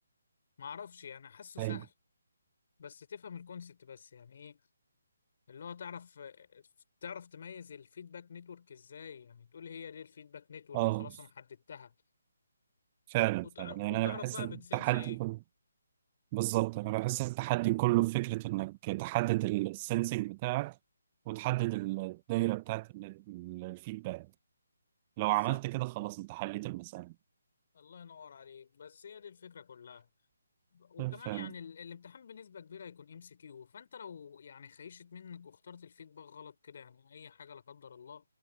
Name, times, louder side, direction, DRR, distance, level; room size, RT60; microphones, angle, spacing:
voice 1, 0.6-1.9 2.8-4.6 5.5-6.7 7.0-11.9 13.4-15.2 25.2-25.6 27.7-30.1 30.7-38.2, left 7 dB, 45° left, 4.4 m, -48 dB
voice 2, 10.7-11.1 13.1-15.4 16.3-20.8 21.3-24.3 25.2-27.1 31.0-31.5, right 21 dB, 25° right, 0.7 m, -32 dB
figure-of-eight pair, 145°, 0 cm